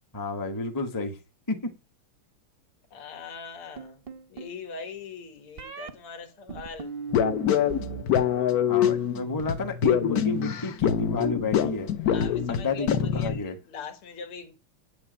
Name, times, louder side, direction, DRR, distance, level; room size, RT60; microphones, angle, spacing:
voice 1, 0.1-1.2 1.5-1.7 8.7-11.9 12.5-13.5, left 2 dB, 15° left, 0.8 m, -31 dB
voice 2, 2.9-6.9 12.1-14.5, left 5 dB, 85° left, 2.5 m, -41 dB
sound 1, 3.8-4.6 5.6-5.9 6.5-8.0 8.3-8.9, right 6 dB, 55° right, 0.6 m, -38 dB
sound 2, 7.1-13.4, left 9 dB, 60° left, 1.0 m, -25 dB
8.6 x 6.8 x 7.9 m
omnidirectional pair, 2.4 m